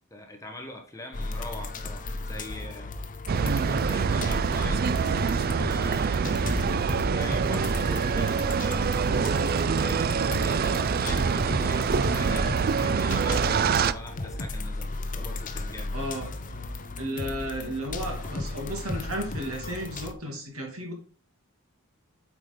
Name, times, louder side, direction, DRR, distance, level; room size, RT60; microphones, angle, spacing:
voice 1, 0.1-2.9 3.6-5.1 5.6-6.3 7.0-9.0 9.6-16.0, left 1 dB, 15° left, 2 dB, 1.2 m, -42 dB
sound 1, 1.1-20.1, left 2 dB, 40° left, 0.8 m, -35 dB
sound 2, 3.3-13.9, right 5 dB, 45° right, 0.4 m, -25 dB
voice 2, 15.9-16.3 17.0-20.9, equal, 70° right, 0 dB, 2.8 m, -34 dB
8.5 x 4.9 x 3.8 m, 0.39 s
head